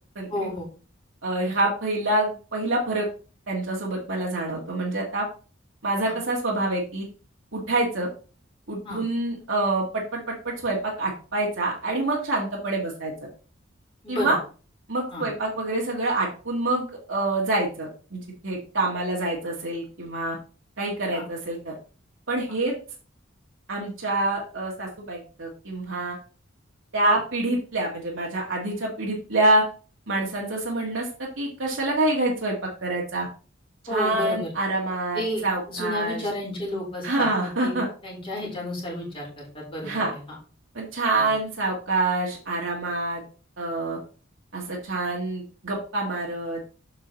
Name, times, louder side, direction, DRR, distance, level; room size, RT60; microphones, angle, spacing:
voice 1, 0.3-0.7 6.0-6.1 8.8-9.0 14.0-14.4 15.1-15.3 21.1-21.2 33.9-34.5 35.1-37.8 38.0-40.4 41.1-41.3, left 1 dB, 30° left, -3 dB, 4.1 m, -32 dB
voice 2, 1.2-3.1 3.5-5.3 5.8-7.1 7.5-8.1 8.7-13.3 14.1-14.4 14.9-20.4 20.8-21.7 22.3-22.7 23.7-26.2 26.9-29.6 30.1-32.6 32.8-33.3 33.9-36.2 37.0-37.9 39.8-40.1 40.7-43.2 43.6-44.0 44.5-46.6, right 2 dB, 70° right, -3 dB, 1.8 m, -26 dB
7.9 x 5.7 x 4.0 m, 0.37 s
head